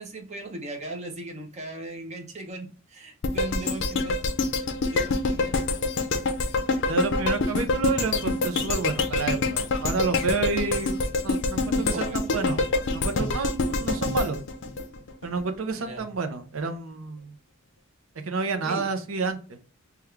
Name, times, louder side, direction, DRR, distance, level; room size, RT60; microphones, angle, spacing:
voice 1, 0.0-4.2 4.8-5.6 11.9-12.2 15.8-16.1 18.6-18.9, right 2 dB, 35° right, 0.7 m, -38 dB
sound 1, 3.2-15.4 15.8-15.9, left 3 dB, 60° left, 0.5 m, -26 dB
voice 2, 6.9-12.6 12.9-14.4 15.2-17.3 18.2-19.6, right 4 dB, 75° right, 0.6 m, -29 dB
3.5 x 2.3 x 3.1 m
head